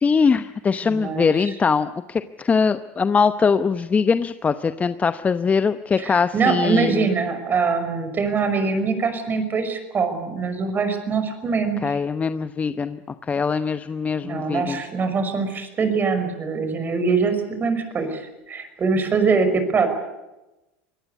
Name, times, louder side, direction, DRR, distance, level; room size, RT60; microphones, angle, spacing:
voice 1, 0.0-7.1 11.8-13.0 13.3-14.8, left 5 dB, 25° left, 12 dB, 0.9 m, -22 dB
voice 2, 0.8-1.3 6.0-12.0 14.2-18.2 18.5-19.9, right 4 dB, 30° right, 8 dB, 5.8 m, -23 dB
24.0 x 19.0 x 8.3 m, 1.0 s
hypercardioid pair, 95°, 6 cm